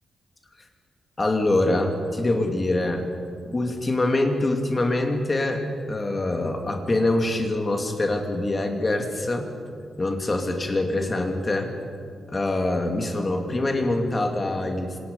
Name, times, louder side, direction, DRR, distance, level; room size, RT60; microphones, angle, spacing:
voice 1, 1.2-3.0 3.4-9.5 10.0-11.7 12.3-15.0, left 2 dB, 20° left, 3 dB, 2.5 m, -24 dB
27.5 x 26.0 x 5.5 m, 2.2 s
wide cardioid pair, 165°, 0 cm